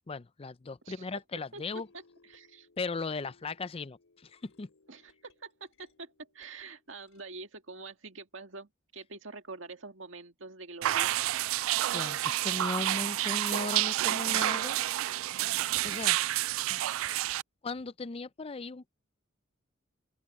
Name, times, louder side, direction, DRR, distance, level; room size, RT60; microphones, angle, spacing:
voice 1, 0.1-1.9 2.8-4.7 11.9-14.8 15.8-16.2 16.7-16.8 17.6-18.9, left 3 dB, 30° left, 0.5 m, -37 dB
sound 1, 1.3-7.2, left 3 dB, 80° left, 4.1 m, -66 dB
voice 2, 1.9-2.7 4.9-11.1, right 3 dB, 70° right, 1.9 m, -46 dB
sound 2, 10.8-17.4, right 14 dB, 85° right, 0.3 m, -29 dB
open air
head